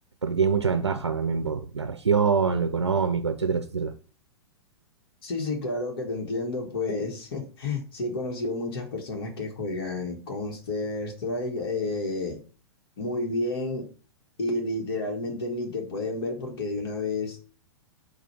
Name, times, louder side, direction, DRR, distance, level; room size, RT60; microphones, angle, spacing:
voice 1, 0.2-3.9, right 5 dB, 90° right, 0.5 m, -25 dB
voice 2, 5.2-12.4 13.0-13.9 14.4-17.4, left 2 dB, 60° left, 1.3 m, -30 dB
4.9 x 2.3 x 4.4 m
figure-of-eight pair, 105°, 14 cm